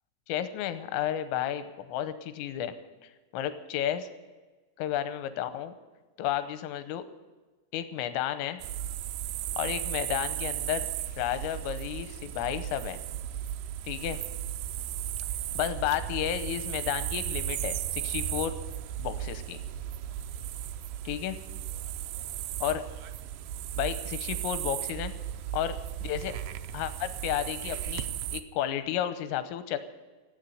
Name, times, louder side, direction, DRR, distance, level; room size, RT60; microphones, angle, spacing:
voice 1, 0.3-2.7 3.0-4.1 4.8-5.8 6.2-7.0 7.7-8.6 9.6-10.9 11.2-13.0 13.9-14.2 15.6-18.5 19.0-19.6 21.1-21.4 22.6-22.8 23.8-25.1 25.5-26.4 26.7-28.1 28.3-29.8, left 11 dB, 85° left, 10 dB, 3.5 m, -32 dB
sound 1, 8.6-28.4, right 11 dB, 85° right, 2.6 m, -35 dB
17.0 x 8.1 x 9.2 m, 1.3 s
omnidirectional pair, 5.8 m